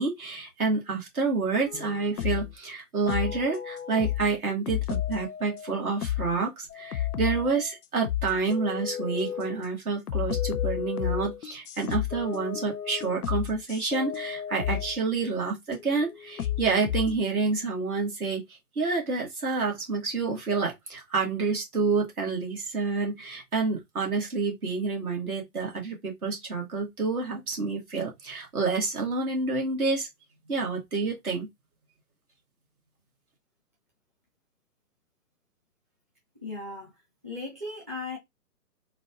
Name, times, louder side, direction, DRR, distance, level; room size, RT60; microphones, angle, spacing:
voice 1, 0.0-18.4 18.8-30.1 30.5-31.5, right 4 dB, 60° right, 1.9 m, -28 dB
sound 1, 1.7-2.5 3.1-4.3 4.7-6.4 6.7-7.7 8.0-9.6 10.1-15.0 15.7-17.2, left 11 dB, 65° left, 0.5 m, -32 dB
voice 2, 36.4-36.9 37.2-38.2, left 2 dB, 10° right, 0.5 m, -36 dB
4.0 x 2.3 x 2.7 m
figure-of-eight pair, 135°, 48 cm